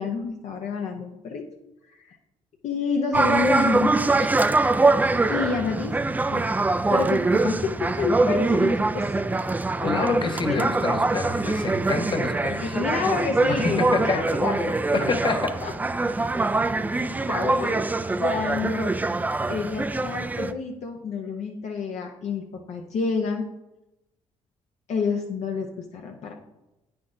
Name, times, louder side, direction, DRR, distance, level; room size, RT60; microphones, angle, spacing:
voice 1, 0.0-1.4 2.1-2.2 2.6-4.3 5.3-6.0 6.3-6.4 6.9-9.1 9.8-10.7 12.6-14.8 15.6-15.7 16.9-17.8 18.2-18.9 19.5-23.4 24.9-26.3, left 4 dB, 65° left, 2 dB, 0.7 m, -28 dB
sound 1, 3.1-20.5, right 3 dB, 15° right, 0.3 m, -24 dB
voice 2, 9.8-12.8 13.5-14.2 14.9-15.6, left 4 dB, 40° left, 7 dB, 0.9 m, -27 dB
8.4 x 5.8 x 2.6 m, 0.96 s
supercardioid pair, 70°, 13 cm